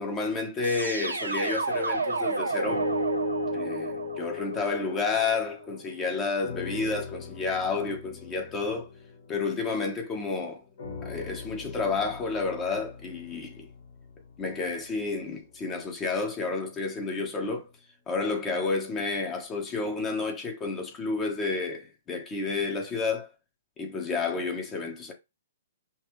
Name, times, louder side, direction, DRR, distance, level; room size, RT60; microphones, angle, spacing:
voice 1, 0.0-2.9 3.5-8.9 9.3-10.6 11.0-13.7 14.4-17.7 18.1-23.3 23.8-25.1, left 4 dB, 20° left, 1.2 m, -30 dB
sound 1, 0.6-5.6, right 3 dB, 90° right, 0.7 m, -32 dB
sound 2, 2.6-6.0 6.4-10.1 10.8-15.0 15.7-15.8, left 2 dB, 65° left, 1.6 m, -37 dB
5.8 x 2.4 x 3.2 m
figure-of-eight pair, 120°, 0 cm